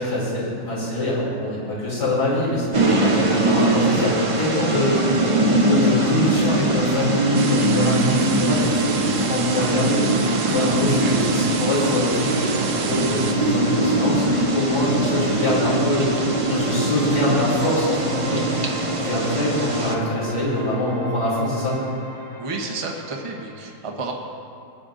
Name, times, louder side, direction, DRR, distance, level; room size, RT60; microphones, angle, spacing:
voice 1, 0.0-3.2 3.5-5.0 5.7-10.1 10.5-12.5 12.7-16.1 16.5-18.7 19.0-21.8, left 1 dB, 80° left, -7 dB, 3.8 m, -24 dB
sound 1, 2.7-19.9, right 2 dB, 45° right, 0.4 m, -22 dB
sound 2, 6.6-23.6, right 1 dB, 25° left, 1.4 m, -38 dB
sound 3, 7.3-13.3, right 8 dB, 85° right, 1.2 m, -32 dB
voice 2, 11.0-11.3 22.4-24.1, right 3 dB, 25° right, 0 dB, 0.8 m, -31 dB
20.5 x 9.3 x 2.5 m, 2.4 s
omnidirectional pair, 1.8 m